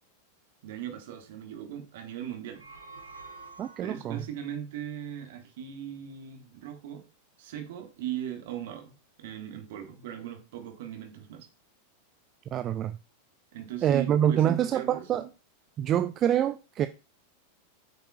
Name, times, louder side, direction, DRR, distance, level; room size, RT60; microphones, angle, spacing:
voice 1, 0.6-2.6 3.8-7.1 7.4-8.9 9.2-11.5 13.5-15.3, right 10 dB, 55° right, 1.6 m, -38 dB
sound 1, 2.4-4.2, right 4 dB, 85° right, 1.4 m, -48 dB
voice 2, 3.6-4.2 12.5-13.0 13.8-15.2 15.8-16.9, right 10 dB, 30° right, 0.4 m, -26 dB
8.2 x 6.0 x 2.4 m
figure-of-eight pair, 90°, 0 cm